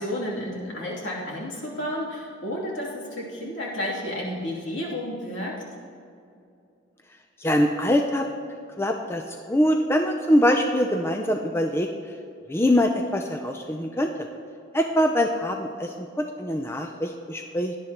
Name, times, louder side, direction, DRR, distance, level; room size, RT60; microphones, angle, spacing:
voice 1, 0.0-5.6, left 1 dB, 65° left, -5 dB, 2.9 m, -31 dB
voice 2, 7.4-8.3 8.8-11.9 12.5-14.3 14.7-17.8, equal, 10° left, 4 dB, 0.4 m, -23 dB
17.5 x 11.0 x 3.0 m, 2.5 s
head